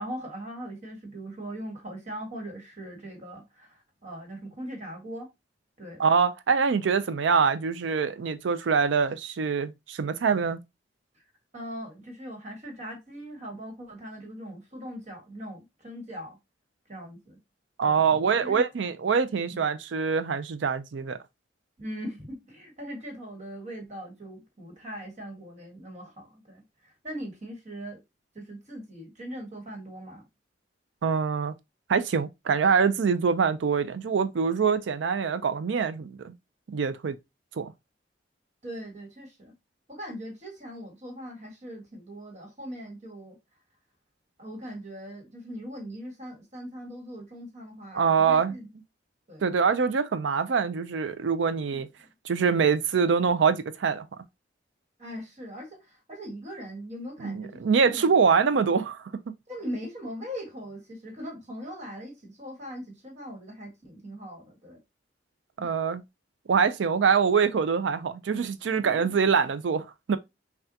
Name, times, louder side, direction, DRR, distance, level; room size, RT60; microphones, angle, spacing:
voice 1, 0.0-5.3 5.8-6.0 11.5-16.4 16.9-17.4 17.8-18.6 19.5-19.6 21.8-28.0 28.3-30.2 38.6-39.5 39.9-43.4 44.4-48.7 49.3-49.4 51.7-52.1 55.0-58.1 59.5-64.8 65.6-65.7, equal, 40° right, 1.5 m, -40 dB
voice 2, 6.0-10.6 17.8-21.2 31.0-31.5 31.9-36.3 36.7-37.2 37.6-37.7 47.9-48.5 49.4-51.9 52.2-54.1 57.2-59.1 65.6-66.0 66.5-70.2, right 6 dB, 80° right, 0.4 m, -24 dB
5.6 x 2.4 x 2.7 m
head